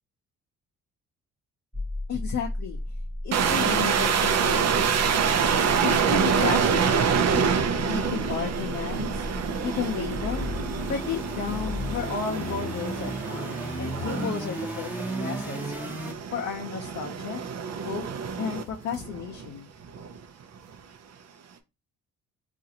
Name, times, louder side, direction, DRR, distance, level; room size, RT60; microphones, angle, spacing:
sound 1, 1.7-16.1, equal, 5° right, 0.7 m, -35 dB
voice 1, 2.1-2.8 3.2-7.5 7.8-9.3 9.6-10.5 10.9-14.9 15.2-15.7 16.3-17.4 17.8-18.1 18.4-19.7, left 7 dB, 65° left, 0.7 m, -33 dB
sound 2, 3.3-19.5 19.8-20.2 20.7-20.8, right 6 dB, 55° right, 0.6 m, -27 dB
3.8 x 2.5 x 2.8 m
cardioid pair, 90°, 30 cm